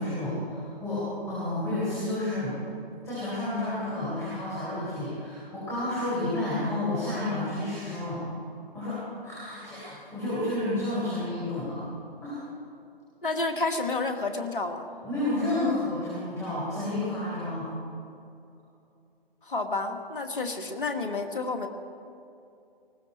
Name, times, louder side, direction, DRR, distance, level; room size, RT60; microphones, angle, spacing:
voice 1, 0.0-2.6 3.0-8.2 8.7-11.8 12.2-12.4 15.0-17.7, left 1 dB, 10° left, -10 dB, 4.0 m, -30 dB
voice 2, 13.2-14.9 19.4-21.7, left 3 dB, 60° left, 5 dB, 1.8 m, -30 dB
19.5 x 15.5 x 4.3 m, 2.6 s
figure-of-eight pair, 145°, 30 cm